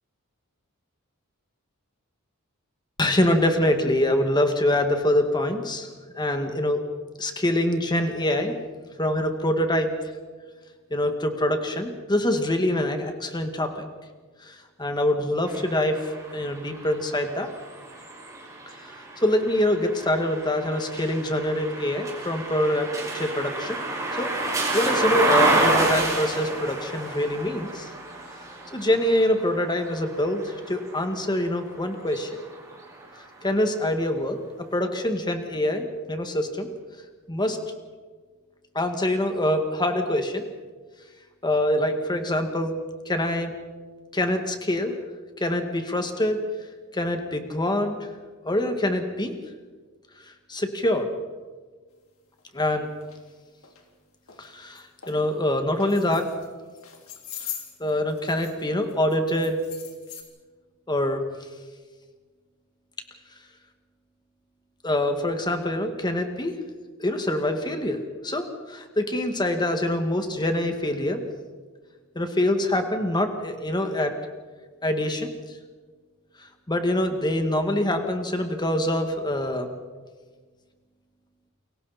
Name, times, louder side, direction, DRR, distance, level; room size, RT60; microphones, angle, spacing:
voice 1, 3.0-5.9 6.1-6.8 7.2-8.6 9.0-9.9 10.9-13.9 14.8-16.0 16.3-17.5 19.2-22.9 23.1-23.8 24.2-24.3 24.7-27.9 28.7-32.4 33.4-34.4 34.7-36.7 37.3-37.6 38.8-40.4 41.4-42.8 43.1-43.5 44.1-44.9 45.4-46.4 46.9-48.0 48.4-49.3 50.5-51.1 52.5-52.9 54.4-56.3 57.8-59.6 60.9-61.2 64.8-66.5 67.0-71.2 72.2-74.1 74.8-75.3 76.7-79.7, left 1 dB, 20° left, 5 dB, 2.0 m, -25 dB
sound 1, 15.5-31.4 32.0-33.2, right 2 dB, 15° right, 6.1 m, -29 dB
sound 2, 52.4-52.5 53.0-53.2 53.6-53.8 54.3-54.5 54.8-55.2 55.7-56.5 56.8-58.6 58.9-60.2, left 9 dB, 65° left, 3.4 m, -40 dB
29.5 x 23.0 x 4.3 m, 1.4 s
head